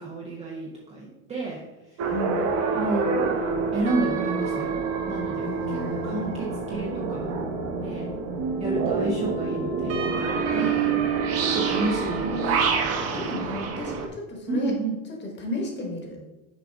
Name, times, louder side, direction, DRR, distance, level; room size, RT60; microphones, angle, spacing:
voice 1, 0.0-1.6 2.7-3.3 3.7-4.8 5.1-7.3 7.8-8.1 8.6-10.9 11.4-12.4 13.1-13.2 14.5-15.0, right 2 dB, 15° right, -3 dB, 0.5 m, -31 dB
sound 1, 2.0-14.1, right 5 dB, 35° right, 0.8 m, -27 dB
voice 2, 2.1-2.5 5.4-6.4 11.7-12.7 13.1-14.7 15.2-16.2, left 2 dB, 25° left, 2 dB, 1.2 m, -34 dB
6.1 x 4.7 x 3.5 m, 1.1 s
supercardioid pair, 145°, 45 cm